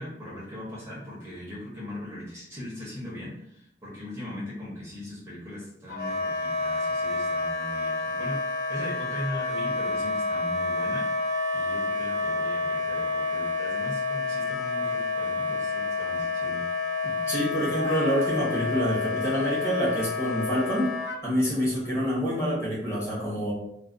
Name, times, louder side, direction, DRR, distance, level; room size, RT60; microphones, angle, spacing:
voice 1, 0.0-8.4 8.7-11.1 11.5-16.6, left 1 dB, 15° right, -7 dB, 0.6 m, -39 dB
Wind instrument woodwind instrument, 5.9-21.2, left 3 dB, 65° left, 0.5 m, -29 dB
voice 2, 17.0-20.9 21.2-23.5, equal, 15° left, -6 dB, 0.9 m, -27 dB
2.3 x 2.2 x 2.4 m, 0.78 s
head